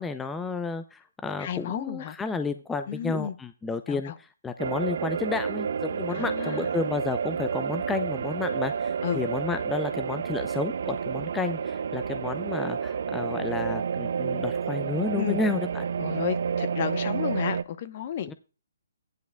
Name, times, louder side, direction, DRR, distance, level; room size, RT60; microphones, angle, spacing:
voice 1, 0.0-15.9 18.3-18.4, left 4 dB, 10° left, 0.4 m, -31 dB
voice 2, 1.4-2.2 2.9-3.3 3.9-4.1 6.1-6.7 9.0-9.2 15.2-15.4 16.0-18.3, left 10 dB, 40° left, 0.8 m, -32 dB
sound 1, 4.6-17.6, right 6 dB, 60° right, 0.4 m, -30 dB
12.5 x 10.5 x 2.3 m
hypercardioid pair, 150°, 0 cm